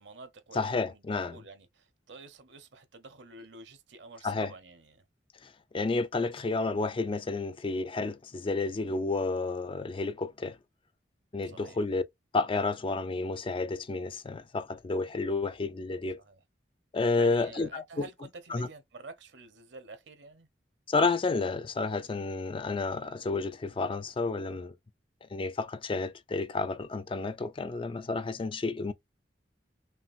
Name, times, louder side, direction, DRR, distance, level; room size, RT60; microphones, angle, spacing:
voice 1, 0.0-5.0 11.5-11.8 16.2-16.4 17.2-20.5, right 3 dB, 70° right, 0.9 m, -49 dB
voice 2, 0.5-1.4 4.2-4.5 5.4-10.6 11.3-12.0 12.3-16.2 16.9-18.0 18.5-18.7 20.9-24.7 25.3-28.9, left 3 dB, 30° left, 0.4 m, -31 dB
5.7 x 2.5 x 2.6 m
head